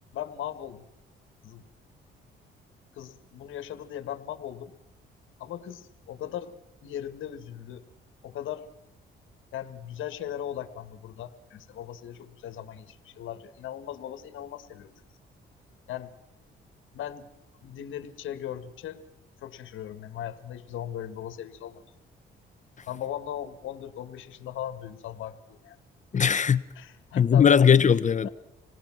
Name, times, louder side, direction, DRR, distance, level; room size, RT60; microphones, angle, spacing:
voice 1, 0.1-0.9 1.4-1.7 2.9-4.7 5.4-6.5 6.8-7.8 8.2-8.7 9.5-14.9 15.9-16.1 16.9-17.3 17.6-19.0 19.4-21.8 22.9-25.8 26.7-27.6 28.2-28.3, left 11 dB, 80° left, 1.8 m, -38 dB
voice 2, 26.1-26.6 27.2-28.3, left 7 dB, 40° left, 0.9 m, -19 dB
27.0 x 19.0 x 6.1 m
cardioid pair, 90°, 20 cm